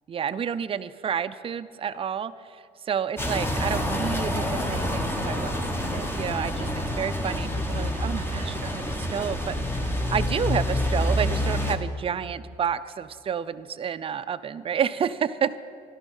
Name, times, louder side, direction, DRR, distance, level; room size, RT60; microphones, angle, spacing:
voice 1, 0.1-15.5, right 7 dB, 35° right, 12 dB, 0.5 m, -30 dB
sound 1, 3.2-11.8, left 1 dB, 15° left, 1.4 m, -27 dB
13.5 x 12.0 x 5.5 m, 2.3 s
cardioid pair, 110°, 17 cm